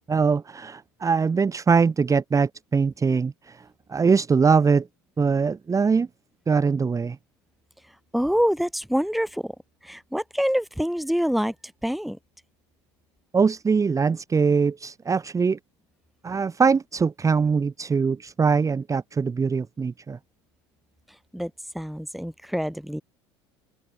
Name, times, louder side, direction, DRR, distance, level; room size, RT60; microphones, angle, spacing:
voice 1, 0.1-4.9 5.2-6.1 6.5-7.2 13.3-15.6 16.2-20.2, right 5 dB, 20° right, 1.8 m, -22 dB
voice 2, 8.1-9.5 9.8-11.5 11.8-12.2 21.3-21.5 21.7-23.0, equal, ahead, 3.1 m, -25 dB
open air
figure-of-eight pair, 65°, 15 cm